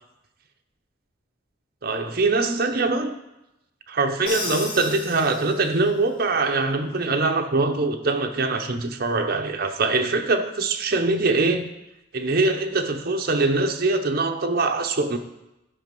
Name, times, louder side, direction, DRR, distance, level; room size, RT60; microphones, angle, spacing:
voice 1, 1.8-3.1 3.9-11.7 12.1-15.2, right 3 dB, 50° right, 0.8 m, -23 dB
Crash cymbal, 4.3-6.0, left 2 dB, 50° left, 3.5 m, -34 dB
11.0 x 5.3 x 5.3 m
head